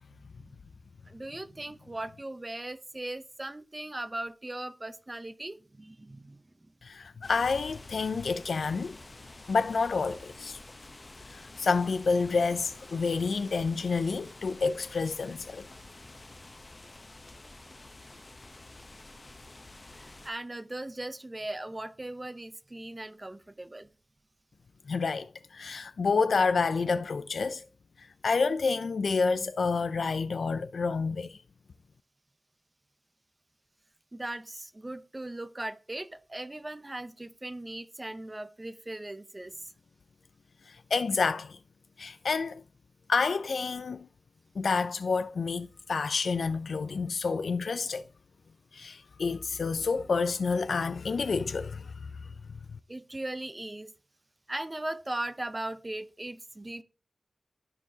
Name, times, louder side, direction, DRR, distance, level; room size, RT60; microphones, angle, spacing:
voice 1, 0.1-0.5 1.1-6.7 19.8-23.9 34.1-39.7 52.9-53.9 54.5-56.8, right 1 dB, 25° right, 0.7 m, -39 dB
voice 2, 6.8-9.0 9.5-10.6 11.3-15.7 24.9-27.6 28.0-31.4 40.7-41.6 42.0-42.6 43.1-44.1 44.6-48.1 48.7-52.1, left 4 dB, 80° left, 0.4 m, -29 dB
sound 1, 7.2-20.3, left 2 dB, 35° left, 0.8 m, -49 dB
13.5 x 4.6 x 2.8 m
wide cardioid pair, 90°, 0 cm